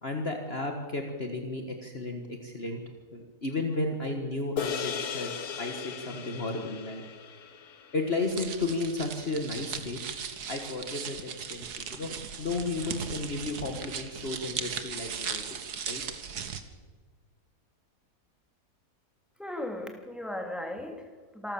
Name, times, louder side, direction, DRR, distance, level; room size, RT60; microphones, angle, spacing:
voice 1, 0.0-2.8 3.1-5.3 5.6-7.0 7.9-10.0 10.5-12.1 12.4-16.0, left 2 dB, 40° left, 3 dB, 1.8 m, -33 dB
sound 1, 4.6-9.1, left 6 dB, 65° left, 1.6 m, -37 dB
sound 2, 8.2-16.6, right 7 dB, 80° right, 1.9 m, -38 dB
voice 2, 19.4-21.5, left 1 dB, ahead, 2 dB, 2.9 m, -37 dB
27.0 x 13.5 x 7.2 m, 1.4 s
omnidirectional pair, 1.7 m